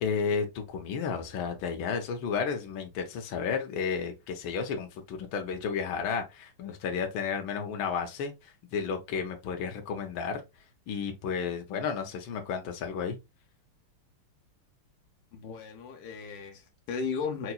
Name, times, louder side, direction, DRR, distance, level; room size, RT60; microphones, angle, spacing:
voice 1, 0.0-10.4 10.9-13.2, left 6 dB, 70° left, 1.6 m, -32 dB
voice 2, 15.3-17.5, left 5 dB, 90° left, 1.8 m, -35 dB
5.6 x 3.0 x 2.3 m
omnidirectional pair, 2.4 m